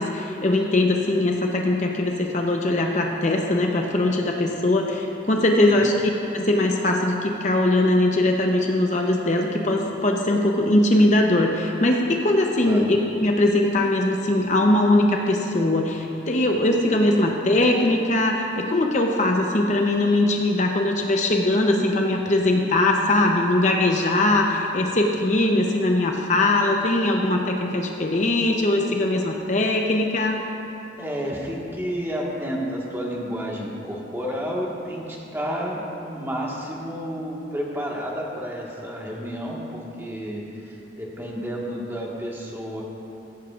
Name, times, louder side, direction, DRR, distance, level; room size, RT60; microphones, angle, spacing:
voice 1, 0.0-5.9 6.3-30.4, left 1 dB, 40° left, 1 dB, 0.8 m, -21 dB
voice 2, 31.0-42.8, equal, 15° right, -3 dB, 1.6 m, -31 dB
15.5 x 15.0 x 2.5 m, 2.9 s
head